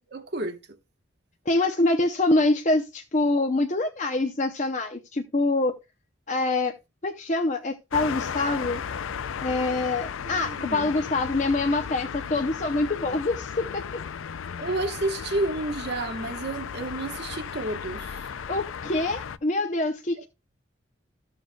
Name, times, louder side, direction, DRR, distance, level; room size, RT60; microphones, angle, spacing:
voice 1, 0.1-0.6 10.2-10.9 14.6-18.3, right 2 dB, 55° right, 1.3 m, -31 dB
voice 2, 1.5-5.8 6.3-6.7 7.0-8.8 9.4-14.0 18.5-20.3, left 2 dB, 35° left, 0.7 m, -25 dB
sound 1, 7.9-19.4, left 7 dB, 80° left, 0.5 m, -35 dB
14.0 x 7.1 x 2.3 m
head